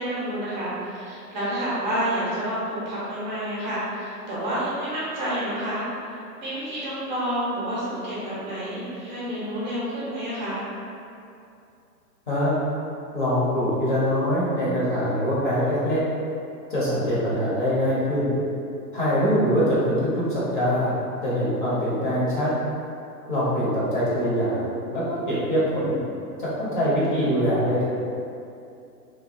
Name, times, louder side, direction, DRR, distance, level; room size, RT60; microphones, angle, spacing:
voice 1, 0.0-5.8 6.4-10.6, right 1 dB, 30° right, -9 dB, 0.6 m, -29 dB
voice 2, 13.1-16.0 16.7-18.4 18.9-21.0 21.2-22.5 23.3-26.0 26.4-27.8, equal, 35° left, -9 dB, 0.5 m, -23 dB
2.8 x 2.1 x 2.5 m, 2.6 s
hypercardioid pair, 145°, 49 cm